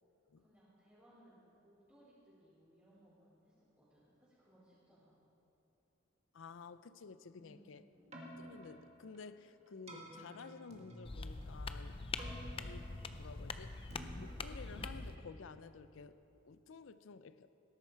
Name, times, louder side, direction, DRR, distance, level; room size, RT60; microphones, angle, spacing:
voice 1, 0.4-5.2 7.4-7.8 11.9-12.1, right 1 dB, 10° right, -12 dB, 3.6 m, -65 dB
voice 2, 6.3-7.8 8.4-12.0 12.6-16.2 16.4-17.5, left 5 dB, 80° left, 14 dB, 0.5 m, -53 dB
Keyboard (musical), 7.9-16.1, right 1 dB, 35° right, 1.9 m, -54 dB
sound 1, 11.0-15.2, left 3 dB, 30° left, 0.5 m, -44 dB
18.0 x 11.0 x 4.6 m, 2.9 s
head